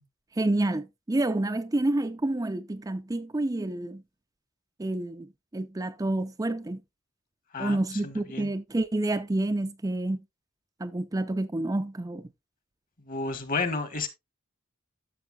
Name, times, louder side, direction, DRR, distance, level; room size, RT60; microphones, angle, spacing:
voice 1, 0.4-4.0 4.8-6.8 7.6-10.2 10.8-12.2, right 2 dB, 15° right, 0.5 m, -29 dB
voice 2, 8.0-8.5 13.0-14.1, left 3 dB, 45° left, 1.4 m, -31 dB
12.5 x 6.9 x 2.3 m
head